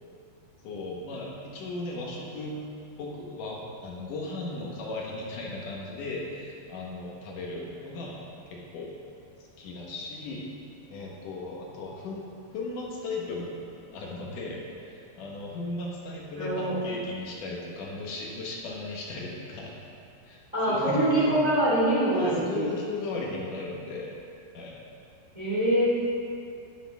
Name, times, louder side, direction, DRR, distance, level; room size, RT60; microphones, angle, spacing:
voice 1, 0.6-2.6 3.0-8.2 8.5-8.9 9.6-10.5 10.9-12.2 12.5-13.6 13.9-19.8 20.2-21.4 22.1-24.1 24.5-24.7, left 2 dB, 65° left, -3 dB, 2.3 m, -36 dB
voice 2, 16.4-16.8 20.5-22.7 25.3-26.0, right 1 dB, 25° right, -8 dB, 0.7 m, -24 dB
11.5 x 10.0 x 3.5 m, 2.4 s
omnidirectional pair, 5.0 m